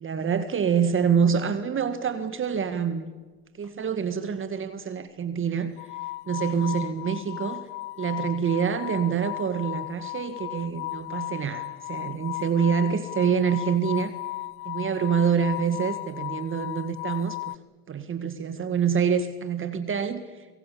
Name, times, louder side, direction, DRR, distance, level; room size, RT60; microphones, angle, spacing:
voice 1, 0.0-3.1 3.6-5.7 6.3-7.6 8.0-14.1 14.6-17.4 17.9-20.5, right 7 dB, 30° right, 10 dB, 1.8 m, -26 dB
sound 1, 3.6-3.8 5.8-17.6, left 20 dB, 75° left, 0.7 m, -35 dB
24.0 x 23.0 x 8.5 m, 1.3 s
hypercardioid pair, 90°, 39 cm